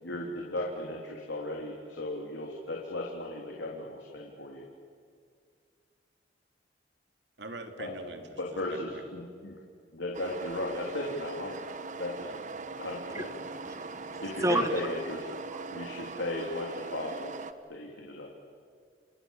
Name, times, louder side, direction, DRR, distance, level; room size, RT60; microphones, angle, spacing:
voice 1, 0.0-4.7 7.8-7.9 8.4-9.6 9.9-11.6 12.0-12.2 12.8-13.3 14.2-15.3 15.7-17.3 17.7-18.3, left 1 dB, 85° left, -1 dB, 3.4 m, -36 dB
voice 2, 7.4-9.0 12.2-12.4, right 2 dB, 70° right, 5 dB, 3.0 m, -43 dB
sound 1, 10.1-17.5, right 4 dB, 45° right, 1.2 m, -41 dB
voice 3, 13.1-14.7 15.5-15.8, right 1 dB, 15° right, 9 dB, 1.6 m, -32 dB
30.0 x 27.0 x 7.3 m, 2.1 s
head